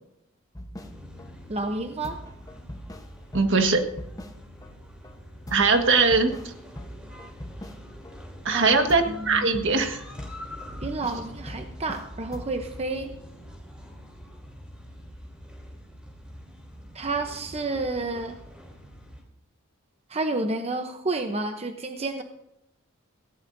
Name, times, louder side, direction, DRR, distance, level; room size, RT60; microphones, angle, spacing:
sound 1, 0.6-1.3 1.6-1.7 2.0-4.7 5.0-5.2 5.5-8.2 8.5-12.1 12.3-12.8, equal, 15° left, 1.0 m, -42 dB
sound 2, 0.7-19.2, equal, 5° right, 3.3 m, -45 dB
voice 1, 1.5-2.2 8.5-8.8 9.1-9.5 10.8-13.1 16.9-18.4 20.1-22.2, right 2 dB, 30° right, 6 dB, 0.8 m, -30 dB
voice 2, 3.3-3.8 5.5-6.5 8.4-10.0, right 4 dB, 60° right, 5 dB, 1.6 m, -21 dB
18.0 x 16.5 x 2.7 m, 0.84 s
head